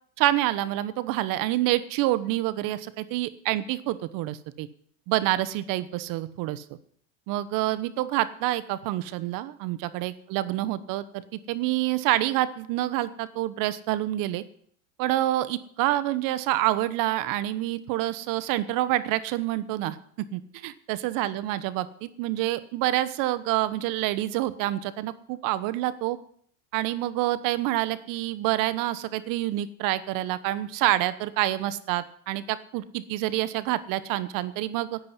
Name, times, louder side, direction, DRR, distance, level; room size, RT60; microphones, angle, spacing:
voice 1, 0.2-4.7 5.1-6.6 7.3-14.4 15.0-20.0 20.3-26.2 26.7-35.0, right 15 dB, 55° right, 16 dB, 1.1 m, -27 dB
10.0 x 8.7 x 9.6 m, 0.63 s
supercardioid pair, 120°, 39 cm